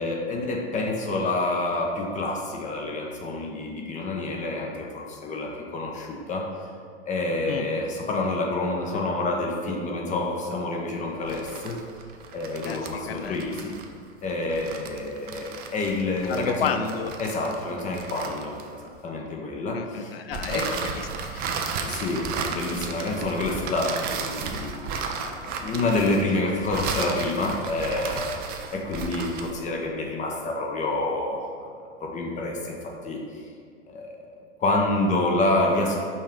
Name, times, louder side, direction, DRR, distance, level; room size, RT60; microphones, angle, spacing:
voice 1, 0.0-6.5 7.1-11.8 12.3-13.7 14.2-16.8 17.2-20.2 20.4-20.7 21.9-31.7 32.0-33.4 33.9-34.3 34.6-36.1, left 2 dB, 20° left, 0 dB, 0.9 m, -28 dB
sound 1, 11.2-19.0 20.3-29.6, right 5 dB, 25° right, 0.6 m, -34 dB
voice 2, 12.7-13.4 16.3-17.1 19.7-20.6 20.9-21.9, left 7 dB, 60° left, 8 dB, 0.6 m, -32 dB
5.5 x 4.5 x 5.2 m, 2.1 s
figure-of-eight pair, 90°, 34 cm